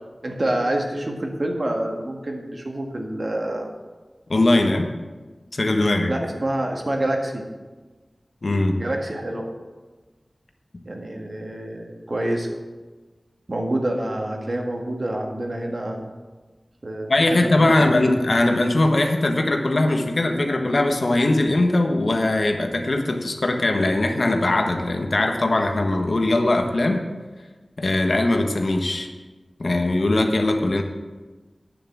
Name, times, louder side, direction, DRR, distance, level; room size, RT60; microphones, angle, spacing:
voice 1, 0.2-3.7 6.1-7.4 8.7-9.5 10.8-12.5 13.5-16.0 16.8-17.9, right 1 dB, 55° right, 2 dB, 1.8 m, -27 dB
voice 2, 4.3-4.8 5.5-6.1 8.4-8.7 17.1-27.0 27.8-29.1 29.6-30.8, left 2 dB, 65° left, 4 dB, 1.3 m, -20 dB
9.4 x 7.2 x 7.3 m, 1.3 s
wide cardioid pair, 60°, 0 cm